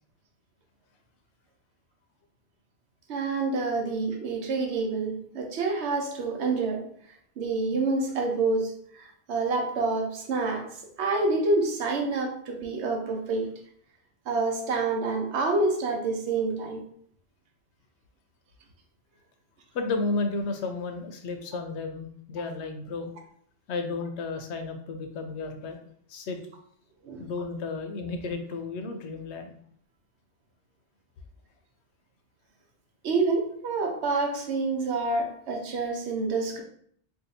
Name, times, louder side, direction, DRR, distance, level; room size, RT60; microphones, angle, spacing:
voice 1, 3.1-6.9 7.4-10.7 11.0-13.5 14.3-16.8 27.0-27.3 33.0-36.6, right 3 dB, 80° right, 2 dB, 1.0 m, -27 dB
voice 2, 19.7-23.1 23.7-25.8 26.1-26.4 27.2-29.5, left 3 dB, 85° left, 5 dB, 0.9 m, -32 dB
2.7 x 2.4 x 3.9 m, 0.62 s
omnidirectional pair, 1.1 m